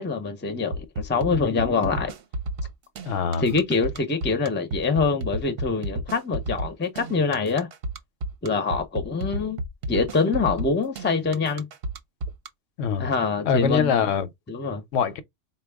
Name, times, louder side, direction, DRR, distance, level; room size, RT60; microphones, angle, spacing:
voice 1, 0.0-2.1 3.4-7.7 8.4-9.6 9.9-11.7 13.0-14.0 14.5-14.8, left 4 dB, 15° left, 0.4 m, -25 dB
sound 1, 0.7-12.5, right 1 dB, 55° right, 0.8 m, -31 dB
voice 2, 3.1-3.4 12.8-13.1 13.4-14.3 14.9-15.2, left 6 dB, 80° left, 0.9 m, -23 dB
4.3 x 2.2 x 3.4 m
omnidirectional pair, 1.3 m